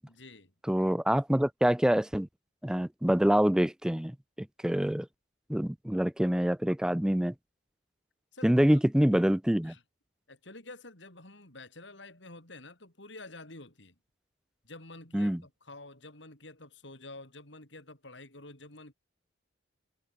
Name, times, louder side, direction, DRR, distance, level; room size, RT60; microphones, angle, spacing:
voice 1, 0.1-0.5 8.3-8.7 9.0-9.2 9.6-9.8 10.3-13.9 14.6-18.9, left 2 dB, 70° left, 5.6 m, -49 dB
voice 2, 0.7-2.3 2.6-4.2 4.6-5.1 5.5-7.3 8.4-9.7 15.1-15.4, equal, 5° right, 0.3 m, -25 dB
head